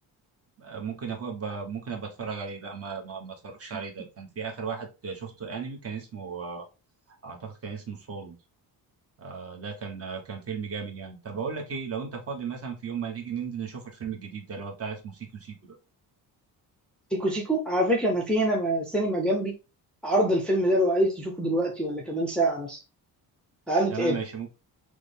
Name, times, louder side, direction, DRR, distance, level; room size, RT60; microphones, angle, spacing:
voice 1, 0.6-6.6 7.2-8.3 9.2-15.8 23.9-24.5, right 6 dB, 35° right, 1.0 m, -36 dB
voice 2, 17.1-19.5 20.0-22.8 23.7-24.2, right 1 dB, ahead, 0.6 m, -25 dB
6.1 x 2.1 x 3.3 m
cardioid pair, 170°, 38 cm